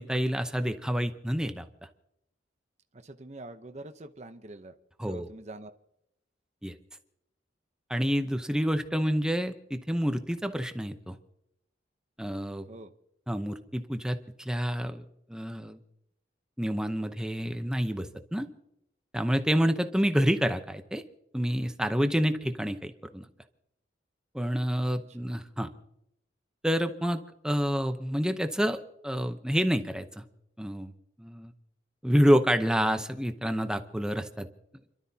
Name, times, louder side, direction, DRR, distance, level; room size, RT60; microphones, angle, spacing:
voice 1, 0.0-1.6 5.0-5.3 6.6-6.8 7.9-11.2 12.2-12.6 13.3-15.0 15.3-15.8 16.6-18.5 19.1-21.0 21.3-23.3 24.3-25.7 26.6-28.8 29.0-30.2 30.6-30.9 31.2-31.5 32.0-34.5, equal, 5° right, 7 dB, 0.8 m, -28 dB
voice 2, 2.9-4.7 5.0-5.7 12.7-12.9 25.1-25.3, right 2 dB, 35° right, 6 dB, 0.8 m, -45 dB
29.5 x 12.5 x 2.8 m, 0.80 s
head